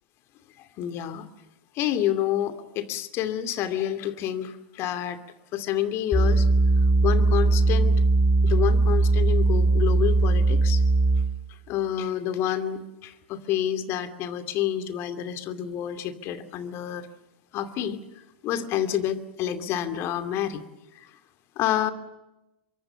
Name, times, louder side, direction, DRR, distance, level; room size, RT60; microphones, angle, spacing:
voice 1, 0.8-1.3 1.7-5.2 5.5-6.5 7.0-7.9 8.4-10.8 11.7-17.1 17.5-18.0 18.4-20.6 21.6-21.9, left 11 dB, 50° left, 11 dB, 2.6 m, -28 dB
sound 1, 6.1-11.4, right 3 dB, 15° left, 4.7 m, -20 dB
26.5 x 24.0 x 7.0 m, 0.95 s
hypercardioid pair, 95°, 6 cm